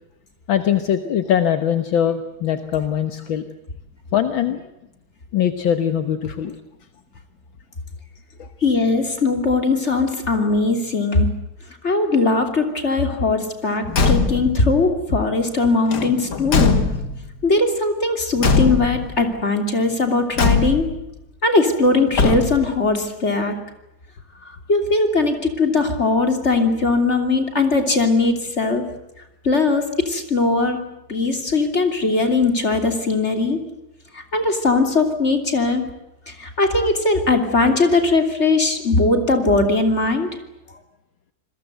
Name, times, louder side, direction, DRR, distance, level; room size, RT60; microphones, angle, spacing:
voice 1, 0.5-3.4 4.1-4.7 5.3-6.6 8.4-8.5, left 9 dB, 70° left, 9 dB, 1.9 m, -21 dB
voice 2, 8.6-11.3 11.8-16.8 17.4-20.9 21.4-23.6 24.4-28.9 29.4-30.8 31.1-33.6 34.1-35.8 36.3-40.3, left 3 dB, 30° left, 6 dB, 3.2 m, -19 dB
Car / Truck / Slam, 13.9-14.6 15.9-17.3 18.4-19.2 20.4-21.0 22.1-22.8, left 4 dB, 55° left, 2.4 m, -20 dB
27.5 x 21.5 x 8.0 m, 0.88 s
omnidirectional pair, 2.2 m